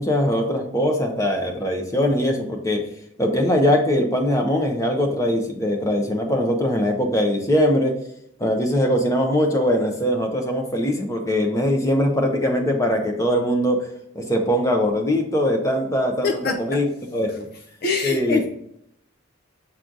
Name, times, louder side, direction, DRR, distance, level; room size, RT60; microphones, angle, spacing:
voice 1, 0.0-2.8 3.2-8.0 8.4-13.8 14.1-16.3 16.6-16.9 17.1-17.5 18.0-18.4, equal, 15° left, 2 dB, 0.9 m, -21 dB
voice 2, 16.2-16.8 17.3-17.4 17.8-18.5, left 4 dB, 50° left, 4 dB, 0.5 m, -24 dB
7.4 x 3.2 x 3.9 m, 0.74 s
head